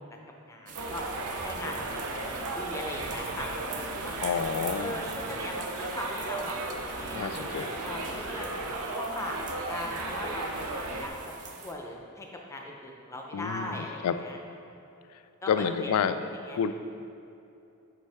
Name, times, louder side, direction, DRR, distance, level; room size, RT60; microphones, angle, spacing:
voice 1, 0.5-1.0 1.4-3.5 3.8-4.1 4.8-6.6 7.0-7.5 7.8-8.5 8.9-11.2 11.6-14.4 15.4-15.9 16.5-16.6, left 1 dB, 15° left, 1 dB, 0.5 m, -39 dB
sound 1, 0.7-11.7, right 5 dB, 35° right, 0.5 m, -45 dB
Subway metro underground, 0.8-11.1, right 2 dB, 85° right, 0.7 m, -35 dB
voice 2, 4.2-5.0 7.1-7.8 13.3-14.2 15.5-16.2 16.5-16.7, left 7 dB, 85° left, 11 dB, 0.3 m, -29 dB
8.1 x 4.5 x 3.4 m, 2.7 s
head